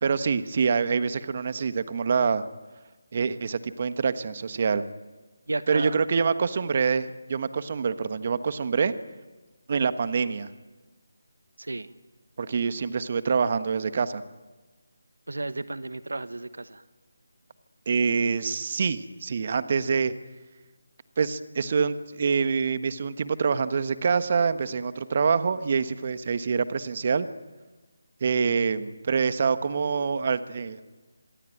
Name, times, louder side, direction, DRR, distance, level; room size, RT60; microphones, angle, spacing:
voice 1, 0.0-2.4 3.1-4.8 5.7-8.9 9.7-10.5 12.4-14.2 17.9-20.1 21.2-27.3 28.2-30.8, right 5 dB, 45° right, 12 dB, 1.3 m, -25 dB
voice 2, 5.5-5.9 11.6-11.9 15.3-16.8, right 2 dB, 85° right, 14 dB, 1.1 m, -33 dB
26.5 x 20.5 x 9.2 m, 1.2 s
figure-of-eight pair, 160°, 0 cm